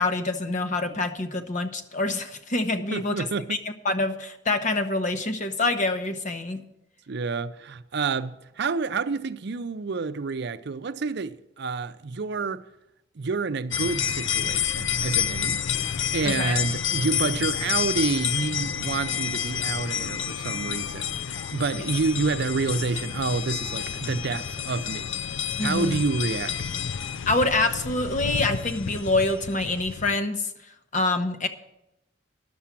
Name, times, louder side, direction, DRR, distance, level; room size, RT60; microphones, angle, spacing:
voice 1, 0.0-3.2 3.5-3.6 3.8-6.6 16.2-16.6 21.7-21.8 25.6-26.0 27.3-30.5 30.9-31.5, left 2 dB, 40° left, 0.9 m, -26 dB
voice 2, 2.9-3.6 7.1-12.7 13.2-15.6 16.1-25.1 25.6-26.6, right 4 dB, 60° right, 0.5 m, -28 dB
sound 1, 13.7-30.2, left 8 dB, 85° left, 0.5 m, -29 dB
11.0 x 7.1 x 7.3 m
head